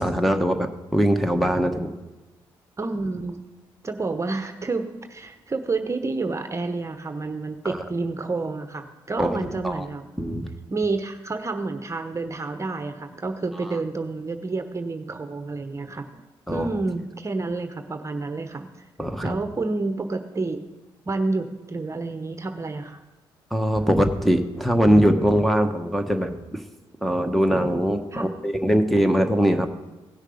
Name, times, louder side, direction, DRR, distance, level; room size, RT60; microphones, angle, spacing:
voice 1, 0.0-1.9 7.6-7.8 9.2-9.8 10.2-10.5 16.5-16.7 19.0-19.4 23.5-26.6 27.0-29.8, equal, ahead, 3 dB, 1.2 m, -22 dB
voice 2, 2.8-3.4 3.8-10.1 10.7-16.2 16.5-18.7 19.2-20.6 21.1-23.0 28.1-28.3, right 3 dB, 30° right, 7 dB, 1.0 m, -29 dB
17.0 x 6.4 x 5.0 m, 1.1 s
supercardioid pair, 60°, 10 cm